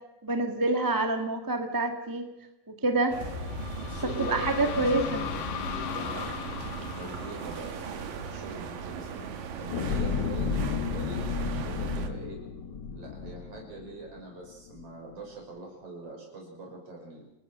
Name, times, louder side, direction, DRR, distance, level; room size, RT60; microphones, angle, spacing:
voice 1, 0.2-2.3 2.7-3.1 4.3-5.2, right 2 dB, 10° right, 5 dB, 1.0 m, -27 dB
sound 1, 3.1-12.1, right 7 dB, 85° right, 3.4 m, -38 dB
sound 2, 3.2-8.8, left 9 dB, 85° left, 2.8 m, -37 dB
voice 2, 3.8-5.3 5.7-11.2 11.6-12.4 12.9-17.3, right 2 dB, 45° right, 0 dB, 7.1 m, -43 dB
sound 3, 9.7-14.2 14.7-14.8, left 5 dB, 50° left, 1.3 m, -32 dB
29.5 x 19.0 x 6.4 m, 0.91 s
omnidirectional pair, 3.8 m